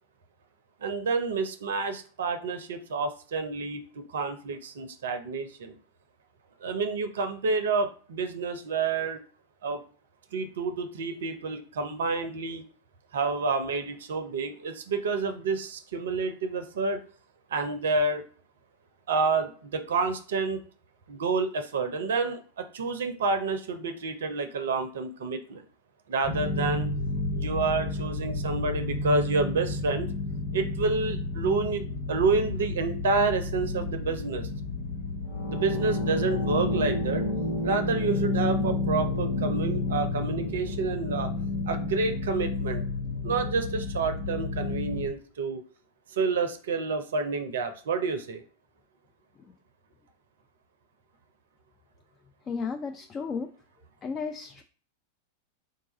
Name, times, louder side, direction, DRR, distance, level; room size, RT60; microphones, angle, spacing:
voice 1, 0.8-3.8 4.1-5.7 6.6-9.2 9.6-9.8 10.3-12.6 13.1-17.0 17.5-18.2 19.1-20.6 21.1-25.6 26.1-26.9 27.3-30.1 30.5-34.5 35.5-37.2 37.6-41.3 41.7-42.8 43.2-45.6 46.2-48.4, right 4 dB, 60° right, 8 dB, 0.5 m, -29 dB
sound 1, 26.2-45.1, left 2 dB, 45° left, 0.8 m, -30 dB
voice 2, 52.5-53.5 54.0-54.6, left 5 dB, 25° left, 6 dB, 0.3 m, -33 dB
3.8 x 2.3 x 3.9 m, 0.42 s
figure-of-eight pair, 90°, 0 cm